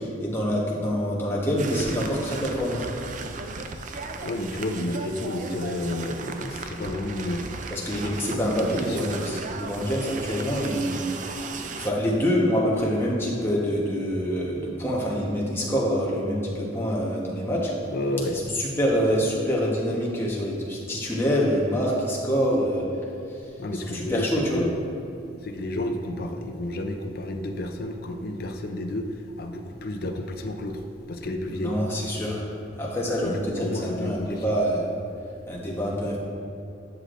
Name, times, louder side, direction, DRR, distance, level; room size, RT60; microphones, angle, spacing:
voice 1, 0.0-2.8 7.7-11.0 11.5-17.7 18.5-22.8 23.7-24.6 31.5-34.9 35.5-36.2, equal, 15° left, -5 dB, 1.1 m, -26 dB
sound 1, 1.6-11.9, right 3 dB, 40° right, 0.4 m, -36 dB
voice 2, 4.2-7.6 8.3-9.1 17.9-18.5 23.6-24.8 25.4-30.8 31.1-31.8 33.2-34.5, left 1 dB, 55° left, 5 dB, 0.5 m, -31 dB
9.5 x 6.4 x 2.5 m, 2.7 s
head